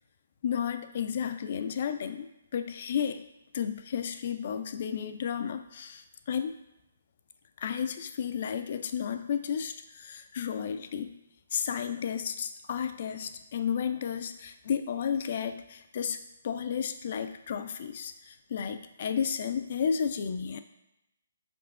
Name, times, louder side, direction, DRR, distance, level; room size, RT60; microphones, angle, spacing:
voice 1, 0.4-2.3 2.5-3.2 3.5-6.5 7.6-11.2 11.5-16.2 16.4-20.6, left 7 dB, 50° left, 9 dB, 0.3 m, -32 dB
4.8 x 3.6 x 2.3 m, 0.87 s
figure-of-eight pair, 140°, 0 cm